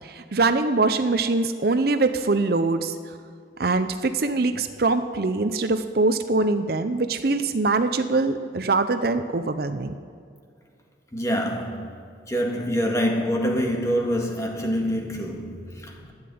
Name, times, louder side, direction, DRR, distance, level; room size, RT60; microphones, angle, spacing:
voice 1, 0.0-3.1 3.6-9.9, right 3 dB, 55° right, 10 dB, 0.6 m, -23 dB
voice 2, 11.1-12.0 12.3-16.1, equal, 15° left, 1 dB, 1.9 m, -26 dB
13.0 x 9.7 x 9.5 m, 2.3 s
head